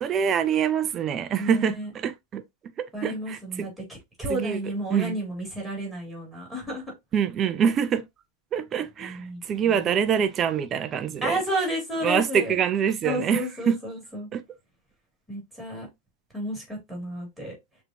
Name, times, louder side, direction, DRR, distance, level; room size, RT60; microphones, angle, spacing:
voice 1, 0.0-2.4 3.0-3.7 4.3-4.6 4.9-5.2 7.1-8.0 8.5-9.2 9.5-11.3 12.0-13.8 14.3-14.4, right 8 dB, 30° right, 0.4 m, -25 dB
voice 2, 1.4-1.9 2.9-3.7 4.2-6.8 9.0-9.9 11.2-12.5 13.0-14.3 15.3-15.9 16.3-17.6, right 1 dB, ahead, 3.1 m, -31 dB
6.5 x 2.7 x 2.6 m
figure-of-eight pair, 90°, 0 cm